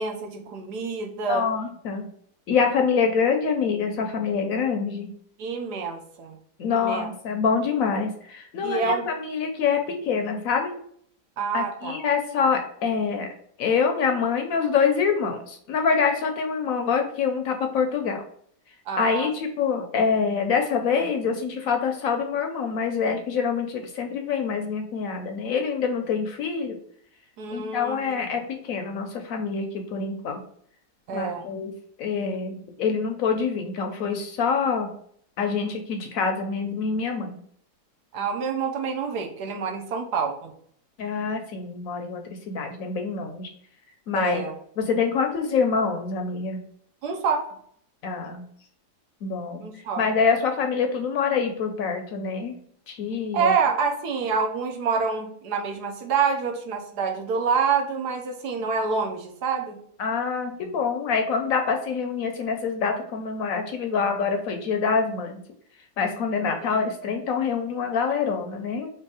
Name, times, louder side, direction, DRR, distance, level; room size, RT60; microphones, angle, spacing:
voice 1, 0.0-1.5 5.4-6.4 6.6-7.1 8.6-9.1 11.4-12.0 18.9-19.3 27.4-28.2 31.1-31.4 38.1-40.5 44.1-44.5 47.0-47.6 49.6-50.0 53.3-59.8 66.6-66.8, right 5 dB, 80° right, 3 dB, 1.3 m, -27 dB
voice 2, 1.3-2.1 2.5-5.1 6.6-10.7 11.5-13.3 13.6-18.2 19.0-26.8 27.5-30.4 31.1-31.7 32.0-34.9 35.4-37.4 41.0-43.5 44.1-44.4 44.8-46.6 48.0-48.4 49.2-49.7 50.0-52.6 52.9-53.5 60.0-65.4 66.0-68.9, left 5 dB, 65° left, 5 dB, 0.9 m, -25 dB
3.4 x 3.0 x 4.7 m, 0.62 s
omnidirectional pair, 1.8 m